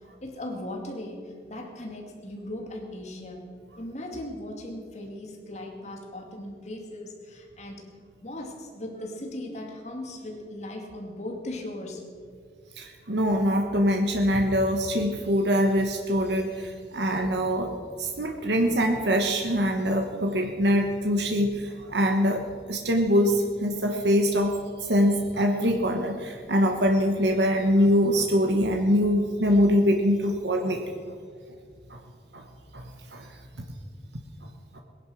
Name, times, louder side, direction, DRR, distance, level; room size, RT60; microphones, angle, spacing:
voice 1, 0.2-7.9 8.2-12.2, left 1 dB, 40° left, 2 dB, 2.3 m, -38 dB
voice 2, 12.8-17.7 18.0-30.8 31.9-32.0 32.3-32.4 32.7-33.3 33.5-33.7 34.7-34.8, equal, 80° right, 3 dB, 1.3 m, -24 dB
19.5 x 10.5 x 6.2 m, 2.1 s
head